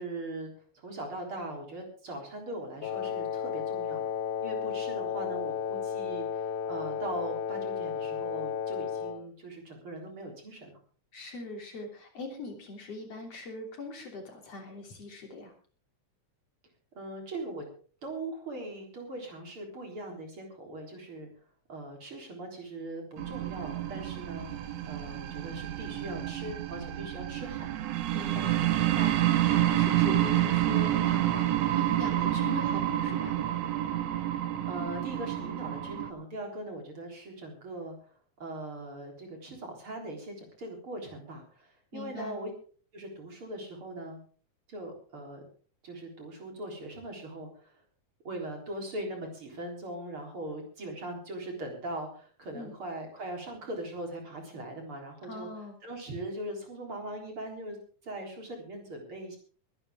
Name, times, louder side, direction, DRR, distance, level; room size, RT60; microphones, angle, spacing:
voice 1, 0.0-4.1 4.4-10.8 16.9-17.6 18.0-21.3 21.7-27.8 34.7-42.5 42.9-44.2 44.7-45.4 45.8-47.7 48.2-55.5 55.8-57.8 58.0-59.4, right 1 dB, 45° right, 2 dB, 4.5 m, -40 dB
Wind instrument woodwind instrument, 2.8-9.3, left 8 dB, 85° left, 2.3 m, -33 dB
voice 2, 11.1-15.5 28.1-33.4 41.9-42.4 52.5-52.7 55.2-55.8, left 3 dB, 55° left, 2 dB, 4.2 m, -41 dB
sound 1, 23.2-36.1, right 13 dB, 65° right, 2.1 m, -28 dB
23.0 x 11.0 x 3.7 m, 0.41 s
omnidirectional pair, 3.4 m